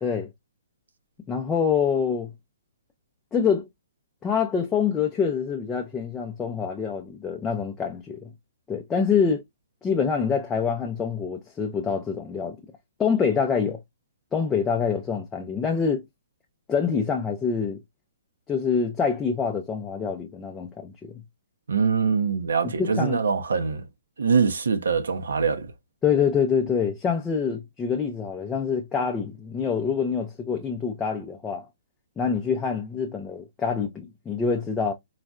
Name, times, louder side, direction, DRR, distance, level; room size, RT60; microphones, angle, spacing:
voice 1, 1.3-2.3 3.3-3.7 4.2-8.3 8.7-9.4 9.8-12.6 13.0-13.8 14.3-16.0 16.7-17.8 18.5-21.2 22.6-23.2 26.0-31.7 32.2-34.9, left 6 dB, 10° left, 0.4 m, -26 dB
voice 2, 21.7-23.8 24.2-25.7, right 5 dB, 90° right, 0.6 m, -23 dB
3.9 x 2.1 x 2.2 m
hypercardioid pair, 160°, 0 cm